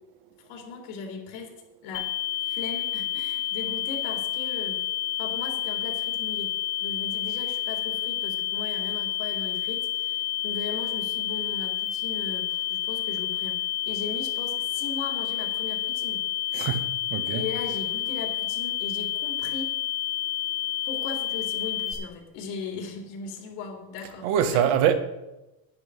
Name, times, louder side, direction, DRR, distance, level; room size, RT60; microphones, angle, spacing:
voice 1, 0.4-1.5 1.8-2.1 2.5-4.8 5.2-6.5 6.8-13.6 13.8-16.2 16.5-16.6 17.3-19.8 20.8-24.7, left 4 dB, 75° left, 3.9 m, -38 dB
sound 1, 1.9-21.9, left 13 dB, 30° left, 1.7 m, -29 dB
voice 2, 16.5-17.5 24.2-24.9, right 9 dB, 65° right, 1.4 m, -24 dB
10.5 x 10.5 x 5.1 m
cardioid pair, 160°, 43 cm